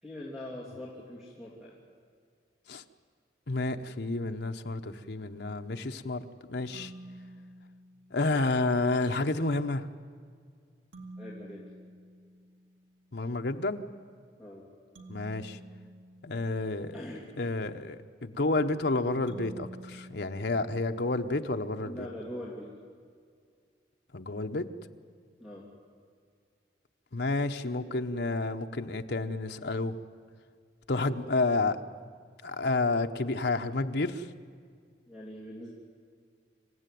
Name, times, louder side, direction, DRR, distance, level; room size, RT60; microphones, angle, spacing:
voice 1, 0.0-1.7 11.2-11.6 14.4-14.6 16.9-17.2 21.8-22.7 25.4-25.6 35.1-35.7, left 1 dB, ahead, -6 dB, 3.2 m, -42 dB
voice 2, 3.5-6.9 8.1-9.9 13.1-13.8 15.1-15.6 16.2-17.0 17.4-22.0 24.1-24.7 27.1-29.9 30.9-31.8 32.4-34.3, left 2 dB, 65° left, 5 dB, 1.0 m, -30 dB
sound 1, 6.7-8.4 10.9-12.9 15.0-17.1 19.3-21.3, right 1 dB, 80° right, 2.5 m, -49 dB
27.0 x 15.5 x 9.3 m, 2.1 s
head